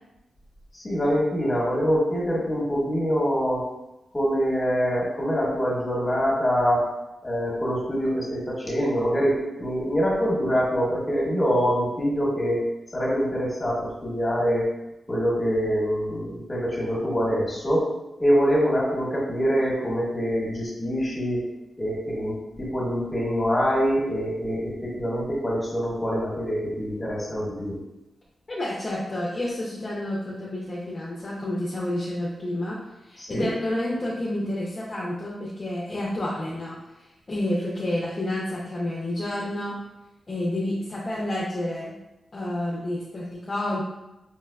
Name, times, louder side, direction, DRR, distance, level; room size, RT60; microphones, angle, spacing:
voice 1, 0.8-3.6 4.1-6.8 7.2-12.6 12.9-14.7 15.1-17.9 18.2-21.4 21.8-27.7 33.2-33.5, equal, 20° left, -5 dB, 1.2 m, -24 dB
voice 2, 28.5-39.8 40.3-42.0 42.3-43.8, left 1 dB, 35° left, -5 dB, 0.5 m, -29 dB
4.5 x 2.2 x 2.2 m, 0.94 s
wide cardioid pair, 105°, 0 cm